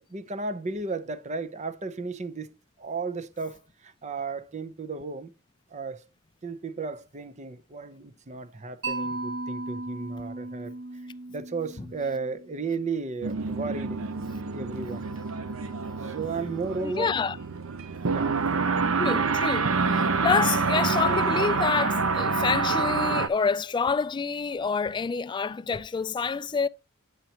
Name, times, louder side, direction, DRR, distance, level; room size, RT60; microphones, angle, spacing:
voice 1, 0.1-5.3 5.7-6.0 6.4-10.7 11.3-14.0 14.5-15.0 16.0-17.1 18.1-18.7, right 4 dB, 35° right, 0.6 m, -34 dB
Mallet percussion, 8.8-12.8, right 2 dB, 70° right, 4.3 m, -36 dB
sound 1, 13.2-23.3, right 4 dB, 90° right, 0.8 m, -27 dB
voice 2, 16.8-17.4 19.0-26.7, left 5 dB, 20° left, 0.3 m, -27 dB
9.1 x 6.6 x 2.9 m
head